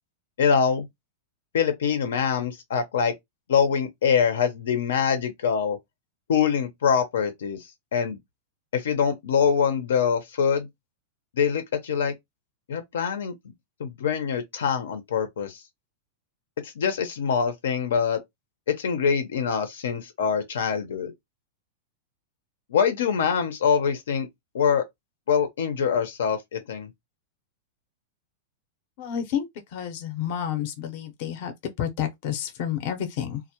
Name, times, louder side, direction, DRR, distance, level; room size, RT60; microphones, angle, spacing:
voice 1, 0.4-0.9 1.5-3.1 3.5-5.8 6.3-7.6 7.9-8.2 8.7-10.7 11.3-12.1 12.7-13.3 13.8-15.6 16.6-18.2 18.7-21.1 22.7-24.3 24.5-24.8 25.3-26.9, left 7 dB, 85° left, 0.6 m, -24 dB
voice 2, 29.0-33.4, left 9 dB, 50° left, 0.6 m, -30 dB
2.1 x 2.1 x 2.8 m
supercardioid pair, 155°, 0 cm